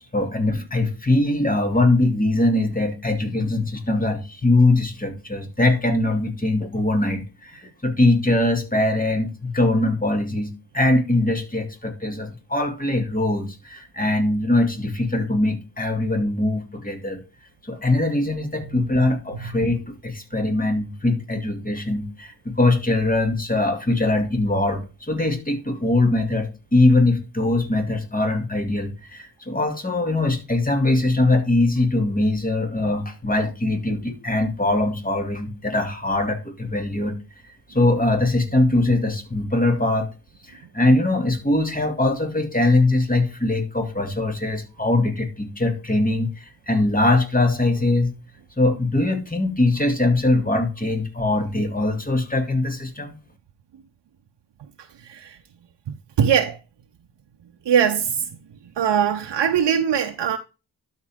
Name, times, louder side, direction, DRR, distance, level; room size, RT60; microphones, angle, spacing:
voice 1, 0.1-17.2 17.6-37.2 37.7-40.1 40.5-48.1 48.6-53.1, left 2 dB, 20° left, 2.3 m, -22 dB
voice 2, 55.0-55.4 56.2-56.6 57.7-58.3 58.8-60.4, right 8 dB, 85° right, 0.7 m, -21 dB
12.0 x 4.6 x 3.5 m
cardioid pair, 70°, 41 cm